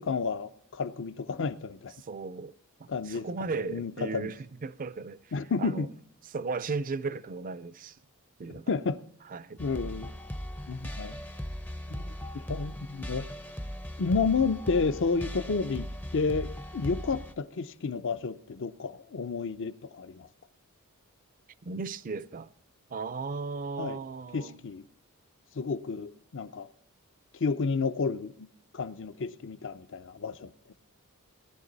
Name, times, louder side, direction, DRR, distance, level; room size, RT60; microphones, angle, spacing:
voice 1, 0.0-1.9 2.9-3.3 3.5-4.3 5.3-5.9 8.7-9.0 9.6-10.1 10.7-11.2 11.9-12.0 12.3-13.3 14.0-20.3 23.8-24.0 24.3-24.8 25.6-26.7 27.4-28.5 28.7-30.5, left 4 dB, 60° left, 0.6 m, -31 dB
voice 2, 2.0-2.5 2.8-5.3 5.6-5.9 6.3-8.0 8.4-8.8 9.2-9.6 21.6-22.5 22.9-24.6, right 4 dB, 40° right, 0.5 m, -36 dB
sound 1, 9.6-17.3, equal, 10° left, 0.5 m, -38 dB
18.0 x 11.0 x 4.0 m
head